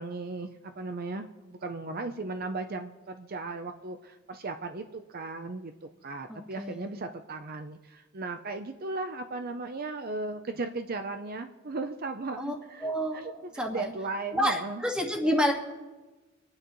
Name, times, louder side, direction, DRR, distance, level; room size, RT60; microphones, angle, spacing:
voice 1, 0.0-13.3 13.7-14.8, right 3 dB, 50° right, 7 dB, 0.6 m, -36 dB
voice 2, 6.3-7.0 12.4-12.5 12.8-13.9 14.3-15.5, equal, 5° right, 1 dB, 1.7 m, -29 dB
26.0 x 9.6 x 3.1 m, 1.2 s
head